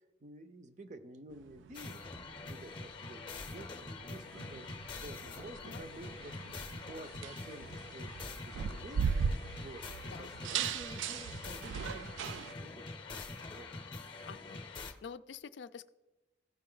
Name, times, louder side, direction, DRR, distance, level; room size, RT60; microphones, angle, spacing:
voice 1, 0.2-9.2 9.6-9.9 10.2-12.9 13.5-13.7, right 2 dB, 40° right, 10 dB, 0.6 m, -51 dB
sound 1, 1.3-12.5, right 6 dB, 90° right, 0.3 m, -39 dB
sound 2, 1.7-14.9, left 3 dB, 25° left, 0.6 m, -45 dB
voice 2, 10.0-10.3 14.3-15.9, left 6 dB, 70° left, 13 dB, 0.4 m, -48 dB
15.0 x 5.2 x 3.8 m, 1.1 s
head